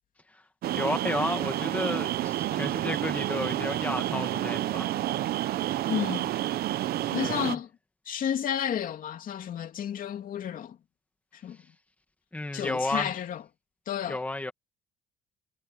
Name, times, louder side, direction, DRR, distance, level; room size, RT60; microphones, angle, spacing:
sound 1, 0.6-7.5, right 14 dB, 65° right, 0.9 m, -29 dB
voice 1, 0.7-5.1 7.1-7.5 12.3-13.1 14.1-14.5, left 2 dB, 10° left, 2.0 m, -32 dB
voice 2, 5.9-6.3 7.1-7.7 8.1-10.8 11.3-11.6 12.5-13.4 13.9-14.2, left 9 dB, 55° left, 3.0 m, -31 dB
cardioid pair, 110°, 17 cm